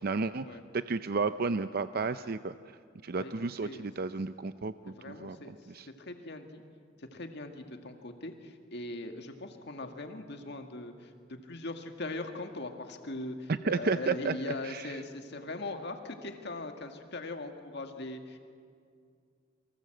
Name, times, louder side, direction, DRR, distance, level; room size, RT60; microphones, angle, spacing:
voice 1, 0.0-2.5 3.0-5.9 13.5-14.9, right 4 dB, 50° right, 12 dB, 0.6 m, -32 dB
voice 2, 5.0-6.6 7.0-18.4, left 2 dB, 60° left, 5 dB, 1.8 m, -40 dB
29.0 x 24.0 x 7.8 m, 2.2 s
head